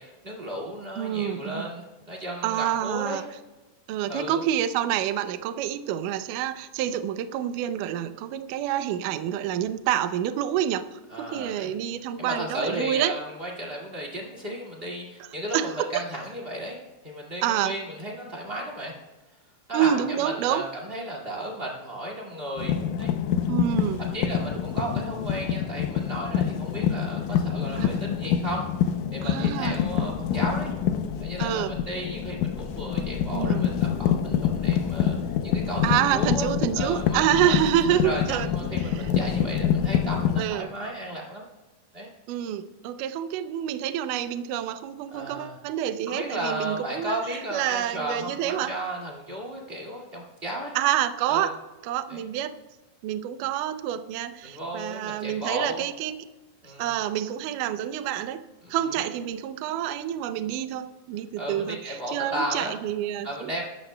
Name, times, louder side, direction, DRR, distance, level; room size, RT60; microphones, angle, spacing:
voice 1, 0.0-3.2 4.1-4.4 11.1-11.7 12.2-18.9 19.7-23.1 24.0-28.7 29.1-30.7 31.2-35.2 35.4-36.5 36.7-37.5 37.9-41.4 41.9-42.1 45.1-45.6 46.1-50.7 51.3-51.5 52.1-52.2 54.4-55.8 56.6-57.0 58.6-58.7 61.4-62.7 63.2-63.6, right 1 dB, 25° right, -2 dB, 1.2 m, -34 dB
voice 2, 1.0-1.6 2.4-3.2 3.9-11.0 11.3-13.1 15.5-16.0 17.4-17.7 19.7-20.7 23.5-24.0 27.8-27.9 29.2-29.8 31.4-31.8 33.3-33.7 35.8-38.5 38.9-39.1 40.4-40.7 42.3-47.2 47.5-48.7 50.8-51.6 51.8-52.6 53.0-56.2 56.8-58.4 58.7-63.5, right 11 dB, 85° right, 10 dB, 1.8 m, -27 dB
sound 1, 22.6-40.5, left 9 dB, 90° left, 1.8 m, -26 dB
sound 2, 29.8-40.5, left 2 dB, 10° left, 1.3 m, -42 dB
23.0 x 12.0 x 2.2 m, 1.1 s
omnidirectional pair, 4.5 m